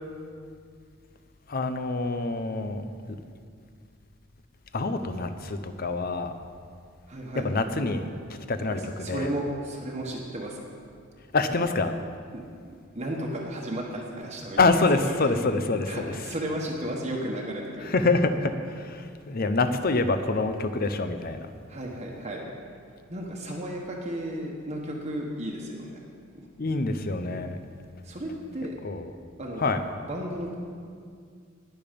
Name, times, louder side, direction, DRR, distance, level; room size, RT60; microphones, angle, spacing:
voice 1, 1.5-2.9 4.7-6.3 7.4-9.3 11.3-11.9 14.6-16.1 17.8-21.4 26.6-27.6 28.8-29.1 29.6-29.8, left 3 dB, 45° left, 9 dB, 0.7 m, -26 dB
voice 2, 7.1-7.5 8.7-10.6 12.3-14.8 15.1-15.3 15.9-18.0 21.7-22.5 23.1-26.0 28.0-28.8 29.4-29.7 30.1-30.5, right 1 dB, 35° right, -2 dB, 1.3 m, -34 dB
20.0 x 6.9 x 5.3 m, 2.2 s
head